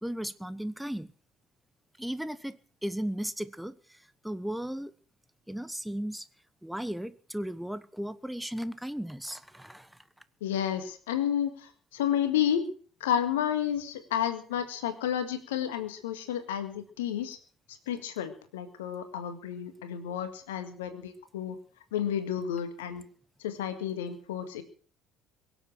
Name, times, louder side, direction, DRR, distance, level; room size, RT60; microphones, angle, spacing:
voice 1, 0.0-1.1 2.0-4.9 5.5-6.3 6.6-10.0, equal, 5° right, 14 dB, 0.9 m, -36 dB
voice 2, 10.4-12.6 13.0-17.4 17.9-21.6 21.9-23.0 23.4-24.6, left 9 dB, 70° left, 10 dB, 1.8 m, -31 dB
23.0 x 8.0 x 6.2 m, 0.43 s
figure-of-eight pair, 55°, 0 cm